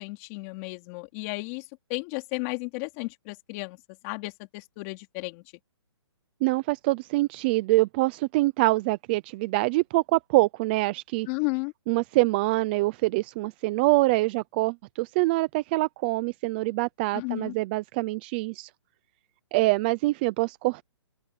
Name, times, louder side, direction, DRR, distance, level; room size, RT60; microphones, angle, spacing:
voice 1, 0.0-3.8 4.0-5.4 11.3-11.7 17.1-17.5, left 28 dB, 25° left, 3.5 m, -33 dB
voice 2, 6.4-11.3 11.9-18.7 19.5-20.8, right 21 dB, 20° right, 0.5 m, -25 dB
open air
hypercardioid pair, 165°, 15 cm